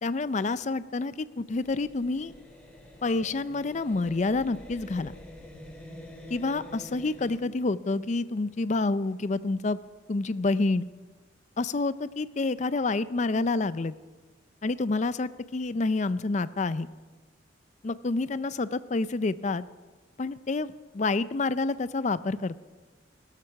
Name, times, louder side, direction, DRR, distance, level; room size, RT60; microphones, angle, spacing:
voice 1, 0.0-2.3 3.0-5.1 6.3-9.8 10.1-10.9 11.6-14.0 14.6-16.9 17.8-19.6 20.2-22.6, left 3 dB, 40° left, 16 dB, 0.4 m, -28 dB
sound 1, 1.5-7.4, left 1 dB, 5° left, 2.6 m, -47 dB
16.5 x 12.5 x 5.9 m, 1.3 s
head